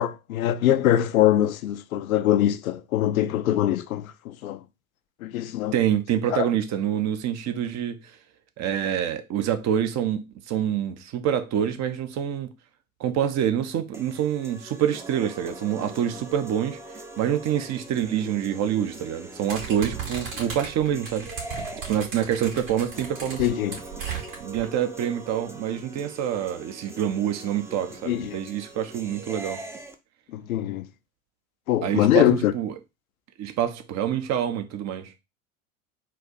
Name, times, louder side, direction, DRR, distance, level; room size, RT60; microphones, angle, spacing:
voice 1, 0.0-4.6 5.2-5.7 6.3-6.5 23.4-23.8 28.0-28.4 30.3-30.9 31.7-32.5, left 12 dB, 80° left, 0.5 m, -23 dB
voice 2, 5.7-8.2 8.6-12.5 13.0-16.8 17.2-21.3 21.9-23.6 24.4-29.6 31.8-32.7 33.4-35.1, right 10 dB, 40° right, 0.7 m, -26 dB
sound 1, 13.9-29.9, right 1 dB, 5° right, 0.5 m, -42 dB
sound 2, 19.5-24.6, right 6 dB, 60° right, 2.6 m, -35 dB
4.2 x 2.5 x 4.0 m
hypercardioid pair, 75°, 41 cm